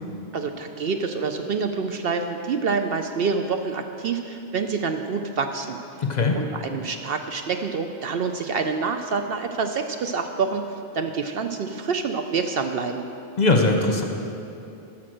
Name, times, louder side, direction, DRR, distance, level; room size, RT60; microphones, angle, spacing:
voice 1, 0.3-5.8 6.4-13.1, right 5 dB, 60° right, 6 dB, 0.7 m, -27 dB
voice 2, 6.0-6.4 13.4-14.0, left 3 dB, 40° left, 3 dB, 0.9 m, -20 dB
14.5 x 5.9 x 6.3 m, 2.7 s
omnidirectional pair, 1.2 m